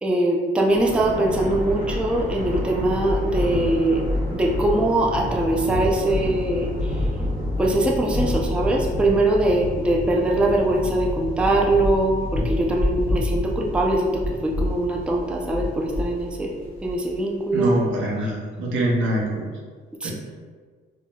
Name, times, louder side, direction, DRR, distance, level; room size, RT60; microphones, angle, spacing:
voice 1, 0.0-4.0 4.3-7.0 7.6-16.5 16.8-17.8 20.0-20.1, right 1 dB, 5° right, -1 dB, 0.4 m, -22 dB
Thunder, 0.7-17.3, left 1 dB, 45° right, 1.2 m, -28 dB
voice 2, 17.5-19.4 20.0-20.1, right 1 dB, 80° right, -2 dB, 0.7 m, -24 dB
4.1 x 2.2 x 2.2 m, 1.5 s
cardioid pair, 90°, 20 cm